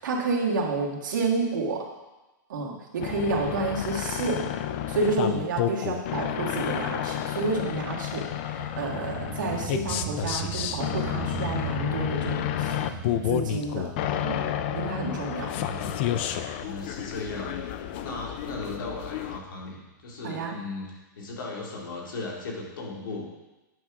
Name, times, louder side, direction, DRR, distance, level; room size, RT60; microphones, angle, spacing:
voice 1, 0.0-1.8 2.5-4.5 4.9-12.8 13.3-13.9 14.2-15.5 20.2-20.6, right 3 dB, 75° right, -2 dB, 1.6 m, -30 dB
sound 1, 3.0-19.4, left 11 dB, 35° left, 0.3 m, -30 dB
voice 2, 3.3-3.8 15.4-16.0 16.6-17.6 18.0-20.9 21.2-23.3, left 2 dB, 85° left, -2 dB, 2.2 m, -37 dB
sound 2, 8.6-19.7, right 7 dB, 20° right, 0.6 m, -40 dB
9.1 x 5.9 x 3.6 m, 1.1 s
supercardioid pair, 165°, 11 cm